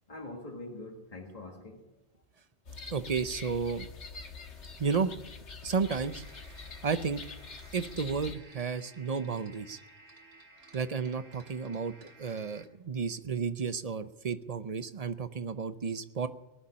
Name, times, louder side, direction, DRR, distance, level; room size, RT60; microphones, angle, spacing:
voice 1, 0.1-2.0, left 2 dB, 35° left, -2 dB, 2.0 m, -44 dB
sound 1, 2.7-8.4, left 4 dB, 80° left, 1.7 m, -45 dB
voice 2, 2.9-3.9 4.8-5.1 5.6-6.2 6.8-7.2 7.7-9.8 10.7-16.3, right 5 dB, 40° right, 12 dB, 0.7 m, -32 dB
sound 2, 5.8-12.7, right 2 dB, 65° right, 2.5 m, -56 dB
19.0 x 7.2 x 10.0 m, 0.95 s
omnidirectional pair, 1.1 m